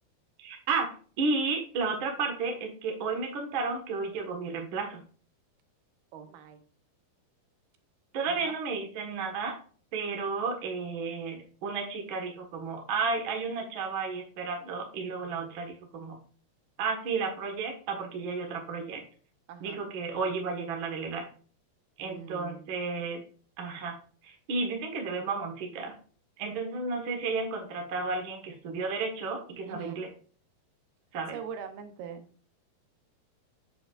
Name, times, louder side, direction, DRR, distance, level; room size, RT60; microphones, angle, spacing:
voice 1, 0.4-0.9 1.2-5.0 8.1-9.5 9.9-16.2 16.8-19.0 19.6-21.3 22.0-23.2 23.6-24.0 24.2-25.9 26.4-30.1 31.1-31.4, right 4 dB, 55° right, 3 dB, 1.3 m, -32 dB
voice 2, 6.1-6.6 8.3-8.5 19.5-19.8 22.0-22.7 29.7-30.1 31.3-32.3, right 7 dB, 80° right, 8 dB, 2.7 m, -42 dB
7.6 x 7.2 x 2.4 m, 0.41 s
omnidirectional pair, 4.6 m